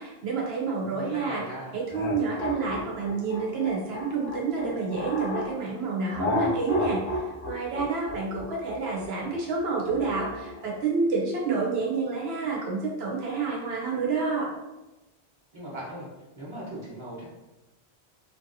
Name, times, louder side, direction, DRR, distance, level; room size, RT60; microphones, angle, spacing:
voice 1, 0.0-1.4 1.7-14.5, right 4 dB, 70° right, -3 dB, 1.0 m, -29 dB
voice 2, 0.9-1.8 15.5-16.1 16.3-17.3, right 1 dB, 30° right, -7 dB, 1.0 m, -38 dB
sound 1, 1.9-5.5 6.1-10.6, left 2 dB, 80° left, 1.2 m, -32 dB
3.0 x 2.6 x 2.6 m, 1.0 s
omnidirectional pair, 1.1 m